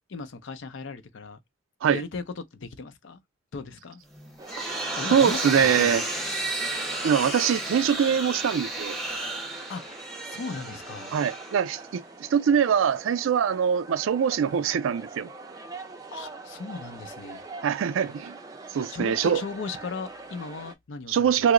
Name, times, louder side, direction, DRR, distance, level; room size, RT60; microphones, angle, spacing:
voice 1, 0.1-1.4 1.9-3.2 3.5-4.0 4.9-6.3 9.7-11.1 16.1-17.4 18.9-21.5, left 4 dB, 70° left, 0.5 m, -37 dB
sound 1, 4.1-12.0, right 2 dB, ahead, 0.8 m, -33 dB
sound 2, 4.4-20.7, right 3 dB, 20° right, 0.5 m, -44 dB
voice 2, 5.1-6.0 7.0-9.0 11.1-15.3 17.6-18.4 18.7-19.4 21.1-21.5, right 7 dB, 85° right, 0.3 m, -23 dB
2.9 x 2.0 x 3.6 m
head